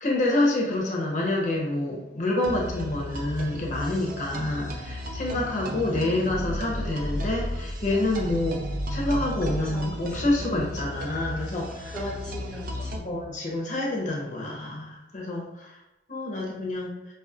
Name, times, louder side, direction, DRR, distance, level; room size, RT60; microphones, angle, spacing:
voice 1, 0.0-8.6 8.9-11.9 13.0-15.7 16.1-16.9, left 2 dB, 45° left, -2 dB, 0.7 m, -27 dB
sound 1, 2.4-13.0, equal, 50° right, 0.4 m, -33 dB
voice 2, 9.5-10.4 11.8-13.1, left 1 dB, 5° left, -5 dB, 0.8 m, -38 dB
5.4 x 2.0 x 2.4 m, 0.99 s
head